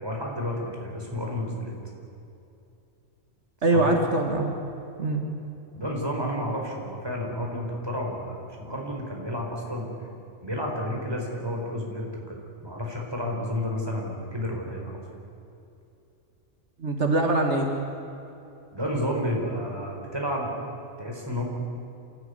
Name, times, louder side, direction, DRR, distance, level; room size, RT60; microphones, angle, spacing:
voice 1, 0.0-1.7 3.7-4.0 5.7-9.9 10.4-12.4 12.6-15.0 18.7-20.5 21.0-21.4, left 1 dB, 20° right, -1 dB, 4.6 m, -31 dB
voice 2, 3.6-4.5 5.0-5.2 16.8-17.7, right 2 dB, 75° right, 3 dB, 2.2 m, -23 dB
28.0 x 14.5 x 9.8 m, 2.7 s
omnidirectional pair, 1.2 m